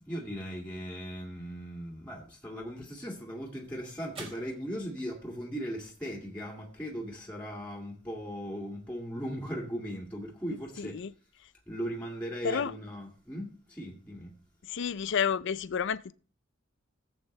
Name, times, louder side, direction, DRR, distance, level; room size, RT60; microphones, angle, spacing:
voice 1, 0.0-11.1 11.7-14.4, equal, 5° left, 2.0 m, -38 dB
sound 1, 2.9-11.4, right 2 dB, 30° right, 3.8 m, -55 dB
voice 2, 10.8-11.1 12.4-12.7 14.7-16.1, left 7 dB, 60° left, 0.5 m, -30 dB
17.0 x 8.1 x 3.2 m
head